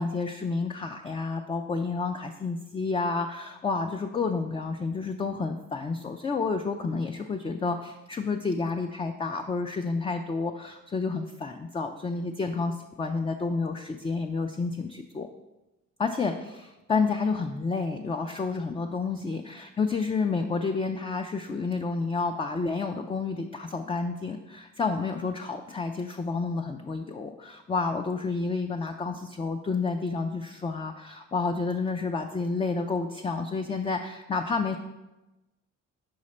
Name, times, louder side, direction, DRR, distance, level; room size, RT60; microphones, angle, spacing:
voice 1, 0.0-15.3 16.0-34.8, left 4 dB, 20° left, 5 dB, 0.4 m, -30 dB
6.3 x 4.9 x 4.2 m, 1.0 s
cardioid pair, 90°, 30 cm